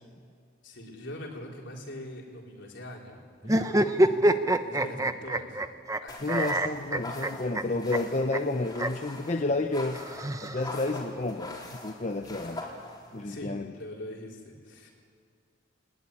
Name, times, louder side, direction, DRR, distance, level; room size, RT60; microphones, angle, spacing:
voice 1, 0.6-5.6 6.0-6.2 7.7-7.8 9.5-9.6 13.2-14.9, left 1 dB, 60° left, -1 dB, 4.6 m, -43 dB
sound 1, 3.4-6.0 6.3-7.6 7.9-8.0 8.3-8.4 8.8-8.9 9.9-10.9, right 1 dB, 15° right, 0.8 m, -26 dB
sound 2, 6.1-13.2, left 2 dB, 20° left, 3.8 m, -43 dB
voice 2, 6.2-10.0 10.4-11.6 11.8-12.6 13.1-13.7, left 2 dB, 35° left, 5 dB, 0.9 m, -30 dB
20.0 x 20.0 x 9.9 m, 2.2 s
head